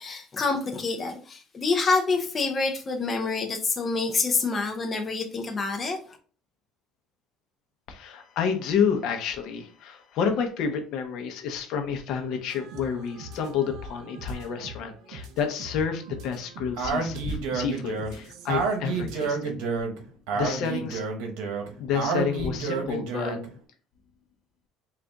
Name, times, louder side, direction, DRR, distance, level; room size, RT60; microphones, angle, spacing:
voice 1, 0.0-6.2, left 4 dB, 25° left, 0.6 m, -27 dB
voice 2, 7.9-19.5 20.3-21.0 21.8-23.4, left 6 dB, 60° left, 0.7 m, -29 dB
sound 1, 12.5-19.4, right 2 dB, 65° right, 0.6 m, -44 dB
Speech, 16.8-23.5, right 4 dB, 90° right, 0.9 m, -29 dB
3.9 x 2.4 x 3.4 m
cardioid pair, 140°, 0 cm